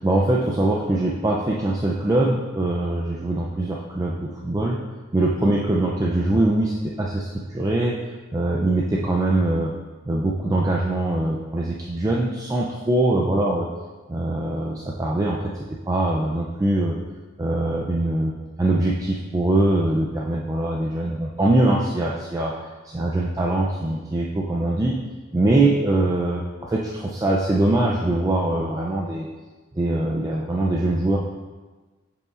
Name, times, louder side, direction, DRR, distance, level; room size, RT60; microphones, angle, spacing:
voice 1, 0.0-4.8 5.1-8.0 8.3-9.8 10.1-13.7 14.1-15.5 15.9-17.0 17.4-25.0 25.3-29.3 29.8-31.2, right 2 dB, 15° right, -3 dB, 0.3 m, -22 dB
7.8 x 5.0 x 2.4 m, 1.3 s
head